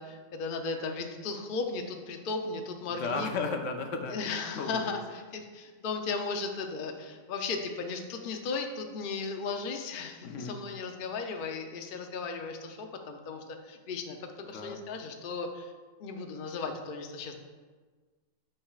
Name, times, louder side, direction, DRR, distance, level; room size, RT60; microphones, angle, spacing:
voice 1, 0.0-3.3 4.1-14.2 14.5-15.7 16.0-17.4, left 4 dB, 50° left, 4 dB, 0.7 m, -36 dB
voice 2, 2.9-4.2 4.5-5.0 10.2-10.6 14.5-14.8, left 4 dB, 70° left, 5 dB, 1.0 m, -34 dB
8.5 x 6.8 x 2.4 m, 1.4 s
omnidirectional pair, 1.3 m